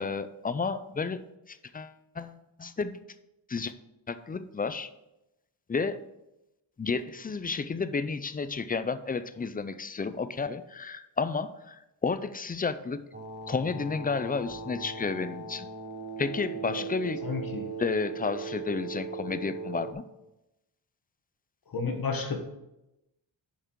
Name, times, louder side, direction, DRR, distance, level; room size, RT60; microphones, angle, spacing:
voice 1, 0.0-3.0 3.5-3.7 4.1-4.9 5.7-6.0 6.8-13.0 13.5-15.7 16.2-17.2 17.8-20.0, left 4 dB, 20° left, 12 dB, 0.3 m, -32 dB
sound 1, 13.1-19.9, right 4 dB, 25° right, 1.2 m, -38 dB
voice 2, 17.2-17.6 21.7-22.4, left 4 dB, 50° left, 4 dB, 1.2 m, -31 dB
7.3 x 5.8 x 4.6 m, 0.91 s
wide cardioid pair, 130°, 45 cm